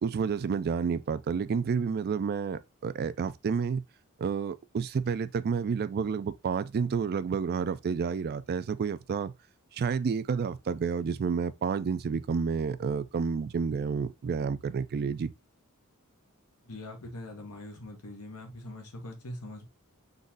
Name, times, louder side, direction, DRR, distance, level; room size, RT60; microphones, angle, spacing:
voice 1, 0.0-3.8 4.2-9.3 9.7-15.3, right 6 dB, 45° right, 0.3 m, -30 dB
voice 2, 16.6-19.7, left 1 dB, 90° left, 1.4 m, -42 dB
4.0 x 3.1 x 3.6 m
head